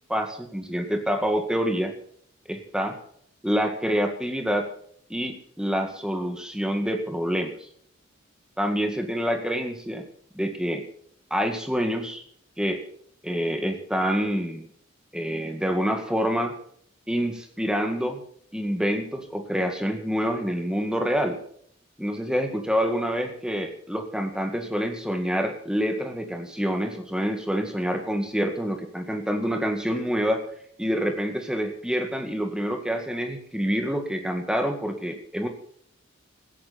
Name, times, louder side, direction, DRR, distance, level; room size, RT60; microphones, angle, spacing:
voice 1, 0.1-1.9 2.5-3.0 3.4-4.7 5.1-7.5 8.6-10.0 10.3-10.8 11.3-12.2 12.6-12.8 13.2-14.7 15.1-16.5 17.1-18.2 18.5-21.4 22.0-30.4 30.8-35.5, equal, 5° right, 4 dB, 2.0 m, -27 dB
17.5 x 14.5 x 4.2 m, 0.64 s
head